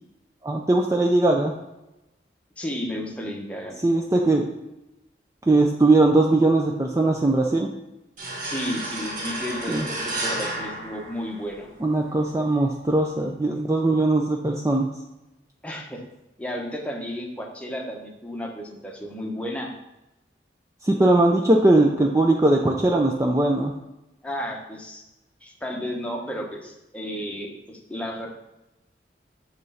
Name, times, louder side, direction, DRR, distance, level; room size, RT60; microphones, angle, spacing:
voice 1, 0.4-1.5 3.8-4.5 5.5-7.7 9.7-9.9 11.8-14.9 20.8-23.7, right 2 dB, 15° right, 1 dB, 0.4 m, -20 dB
voice 2, 2.6-3.8 8.4-11.7 15.6-16.0 16.4-19.7 24.2-25.0 25.4-28.3, equal, 5° left, 0 dB, 0.9 m, -33 dB
sound 1, 8.2-11.7, right 2 dB, 50° right, 1.4 m, -32 dB
7.8 x 3.2 x 5.5 m, 0.95 s
head